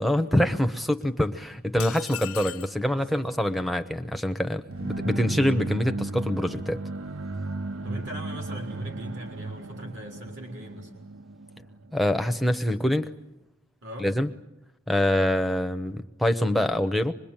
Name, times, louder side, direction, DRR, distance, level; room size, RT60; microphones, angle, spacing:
voice 1, 0.0-6.8 11.9-13.1 14.0-14.3 14.9-17.1, left 1 dB, ahead, 6 dB, 0.9 m, -25 dB
sound 1, 1.8-2.8, left 12 dB, 85° left, 1.0 m, -37 dB
voice 2, 2.9-3.7 7.8-10.9 13.8-14.1, right 1 dB, 55° right, 3 dB, 3.7 m, -40 dB
sound 2, 4.7-12.4, right 2 dB, 70° right, 0.9 m, -35 dB
25.0 x 21.5 x 8.9 m, 0.92 s
head